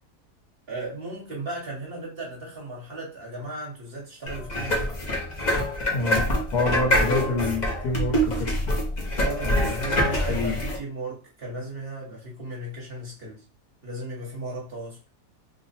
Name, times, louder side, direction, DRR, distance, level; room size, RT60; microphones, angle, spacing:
voice 1, 0.7-5.0 6.9-7.3 9.2-13.4 13.8-15.0, right 2 dB, 40° right, -4 dB, 1.3 m, -36 dB
sound 1, 4.3-10.8, equal, 35° left, 0.8 m, -25 dB
voice 2, 5.9-6.2 6.5-8.5 9.4-9.5 10.3-10.6, left 2 dB, 80° left, 0 dB, 1.5 m, -26 dB
3.3 x 2.1 x 4.1 m, 0.36 s
omnidirectional pair, 1.7 m